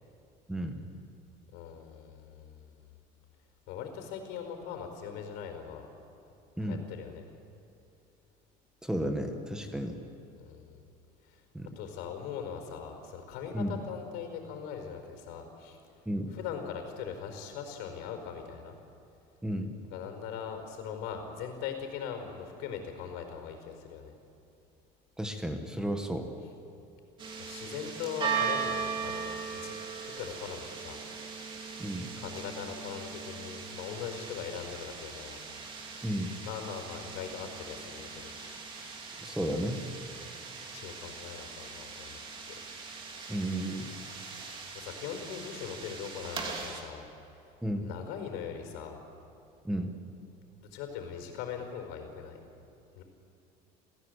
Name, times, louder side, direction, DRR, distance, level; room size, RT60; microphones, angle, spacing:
voice 1, 0.5-0.8 6.6-6.8 8.8-10.0 11.5-11.7 13.5-13.8 16.0-16.3 19.4-19.7 25.2-26.3 31.8-32.1 36.0-36.3 39.2-39.8 43.3-43.9 47.6-47.9 49.6-49.9, right 1 dB, 5° right, 5 dB, 1.4 m, -33 dB
voice 2, 1.5-2.9 3.7-5.9 6.6-7.2 10.3-10.8 11.2-11.4 11.7-15.8 16.3-18.8 19.9-24.1 27.4-31.0 32.2-35.4 36.4-38.3 38.7-38.9 40.7-42.2 44.7-47.1 47.8-49.0 50.6-52.4 53.0-53.1, left 7 dB, 80° left, 5 dB, 4.8 m, -40 dB
sound 1, 27.2-46.8, right 6 dB, 30° right, 2.9 m, -39 dB
29.0 x 16.5 x 8.2 m, 2.8 s
cardioid pair, 170°, 17 cm